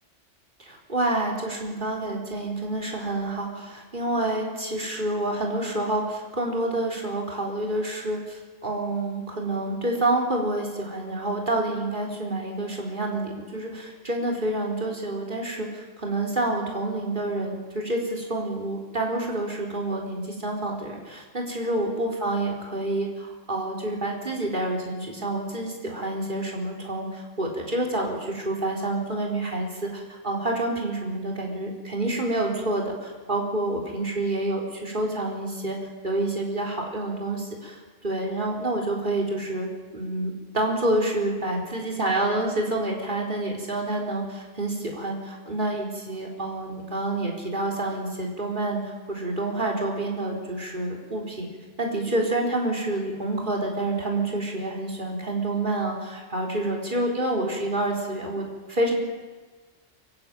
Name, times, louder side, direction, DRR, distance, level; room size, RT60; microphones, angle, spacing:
voice 1, 0.6-35.8 36.0-39.7 39.9-51.5 51.8-58.9, right 2 dB, 40° right, 0 dB, 4.2 m, -28 dB
25.0 x 15.5 x 9.0 m, 1.4 s
omnidirectional pair, 1.3 m